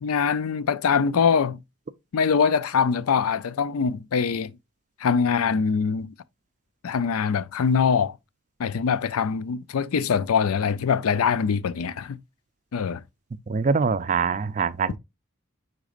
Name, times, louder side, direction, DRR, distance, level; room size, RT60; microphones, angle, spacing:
voice 1, 0.0-1.6 2.1-4.5 5.0-6.1 6.8-8.2 8.6-12.2 12.7-13.0, left 6 dB, 90° left, 0.4 m, -23 dB
voice 2, 13.5-15.0, right 5 dB, 35° right, 0.4 m, -24 dB
9.9 x 4.1 x 2.5 m
head